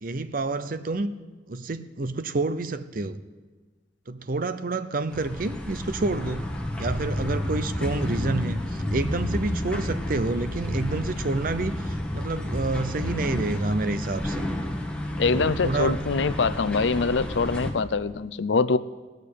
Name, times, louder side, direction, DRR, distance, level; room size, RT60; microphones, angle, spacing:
voice 1, 0.0-1.1 1.5-3.2 4.1-6.4 6.8-14.5 15.3-16.0, right 2 dB, 50° right, 12 dB, 0.7 m, -29 dB
sound 1, 5.1-17.7, left 1 dB, 5° left, 1.4 m, -30 dB
voice 2, 15.2-18.8, left 4 dB, 80° left, 15 dB, 0.6 m, -24 dB
17.5 x 6.7 x 8.5 m, 1.3 s
head